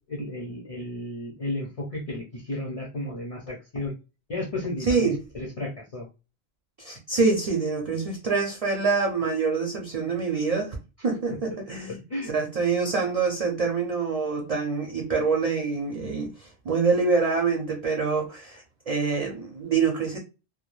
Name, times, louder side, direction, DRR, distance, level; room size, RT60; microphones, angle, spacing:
voice 1, 0.1-4.0 4.3-6.1 11.9-12.3, left 1 dB, 45° left, 0.5 m, -33 dB
voice 2, 4.8-5.2 6.8-10.8 11.0-12.0 12.3-20.2, right 4 dB, 55° right, 0.4 m, -25 dB
2.2 x 2.0 x 3.0 m
omnidirectional pair, 1.1 m